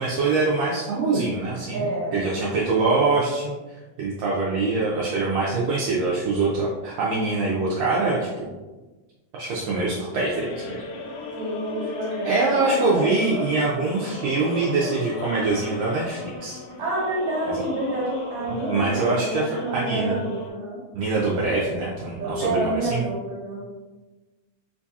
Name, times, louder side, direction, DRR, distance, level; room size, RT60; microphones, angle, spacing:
voice 1, 0.0-3.6 4.0-8.5 9.3-10.8 12.2-16.6 18.7-19.5 19.7-20.2 20.9-23.0, right 3 dB, 80° right, -5 dB, 1.5 m, -24 dB
voice 2, 1.7-2.6 11.4-13.5 16.8-20.8 22.2-23.6, right 1 dB, 50° right, -6 dB, 1.8 m, -29 dB
sound 1, 10.1-20.5, left 3 dB, 85° left, 1.9 m, -36 dB
4.4 x 2.7 x 2.3 m, 1.2 s
omnidirectional pair, 3.4 m